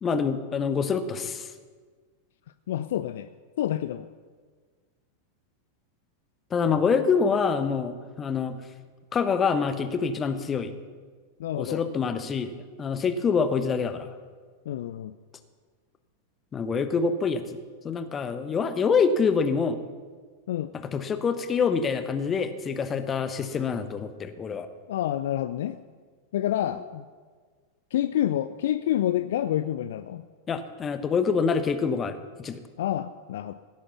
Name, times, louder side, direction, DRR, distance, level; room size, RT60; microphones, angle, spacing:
voice 1, 0.0-1.5 6.5-8.6 9.1-10.7 11.5-12.5 12.8-14.1 16.5-17.6 17.8-19.8 20.7-24.7 30.5-32.6, left 5 dB, 20° left, 10 dB, 1.0 m, -26 dB
voice 2, 2.7-3.3 3.6-4.1 11.4-11.8 14.7-15.1 20.5-20.7 24.9-25.8 26.3-27.1 27.9-30.2 32.8-33.5, left 12 dB, 55° left, 13 dB, 0.4 m, -28 dB
16.0 x 8.7 x 5.8 m, 1.5 s
figure-of-eight pair, 90°, 0 cm